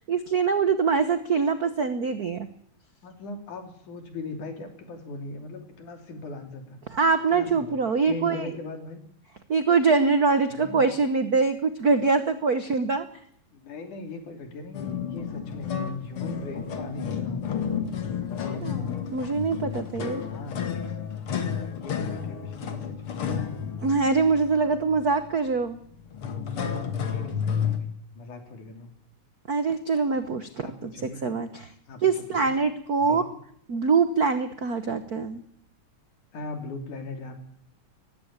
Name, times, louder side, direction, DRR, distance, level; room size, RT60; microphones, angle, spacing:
voice 1, 0.1-2.5 6.9-8.5 9.5-13.0 18.6-20.2 23.8-25.8 29.5-31.7 32.0-33.2 33.7-35.4, right 4 dB, 70° right, 10 dB, 0.8 m, -24 dB
voice 2, 3.0-6.8 7.3-7.8 8.0-9.0 10.5-10.9 13.5-14.8 15.1-15.7 16.0-17.7 20.3-20.7 21.8-23.3 27.1-28.9 30.6-31.2 31.9-32.5 33.0-33.3 36.3-37.3, left 2 dB, 90° left, 5 dB, 4.5 m, -39 dB
sound 1, 14.7-27.8, left 7 dB, 50° left, 2.5 m, -31 dB
18.5 x 16.0 x 8.9 m, 0.65 s
omnidirectional pair, 3.4 m